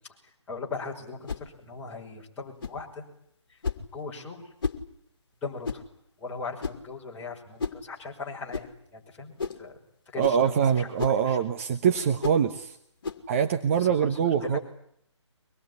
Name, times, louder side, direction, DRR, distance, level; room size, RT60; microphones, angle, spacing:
voice 1, 0.5-3.0 3.5-3.6 3.9-4.5 5.4-5.8 6.2-9.8 10.1-11.4 13.8-14.6, left 4 dB, 10° left, -4 dB, 5.9 m, -39 dB
sound 1, 1.3-1.5 2.6-2.8 3.6-3.9 4.6-4.8 5.6-5.9 6.6-6.9 7.6-7.8 8.5-8.7 9.4-9.6 10.2-10.4 11.0-11.2 12.2-12.4 13.0-13.2, left 5 dB, 45° left, 2.8 m, -32 dB
voice 2, 10.2-12.8 13.3-14.6, right 8 dB, 30° right, 6 dB, 1.3 m, -24 dB
24.0 x 21.5 x 9.9 m, 0.69 s
figure-of-eight pair, 145°, 15 cm